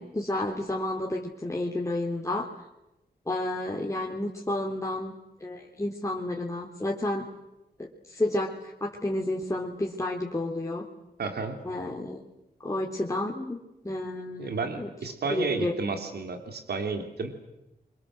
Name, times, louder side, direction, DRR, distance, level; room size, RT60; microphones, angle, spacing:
voice 1, 0.0-2.5 3.3-5.1 5.4-7.3 7.8-10.8 11.6-12.3 12.6-13.6 13.8-14.9 15.3-15.8, left 1 dB, 20° left, -1 dB, 3.3 m, -31 dB
voice 2, 11.2-11.6 14.4-17.3, right 4 dB, 90° right, 6 dB, 3.3 m, -32 dB
28.0 x 24.5 x 7.7 m, 0.94 s
wide cardioid pair, 75°, 16 cm